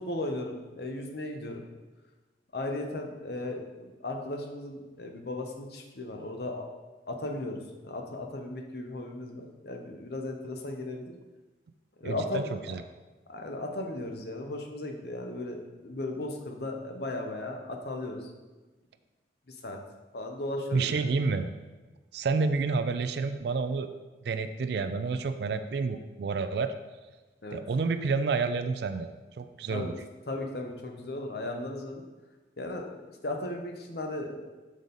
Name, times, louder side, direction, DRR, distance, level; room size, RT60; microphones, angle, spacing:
voice 1, 0.0-1.6 2.5-6.6 7.1-11.1 12.0-12.6 13.3-18.3 19.5-19.8 20.1-21.0 27.4-27.6 29.7-29.9 30.3-32.0 32.6-34.5, left 2 dB, 60° left, 3 dB, 0.8 m, -36 dB
voice 2, 12.0-12.4 12.7-12.8 20.7-21.5 22.1-23.9 24.3-26.7 27.5-29.1 29.4-29.9, right 4 dB, 65° right, 10 dB, 0.3 m, -29 dB
6.3 x 5.3 x 3.9 m, 1.2 s
head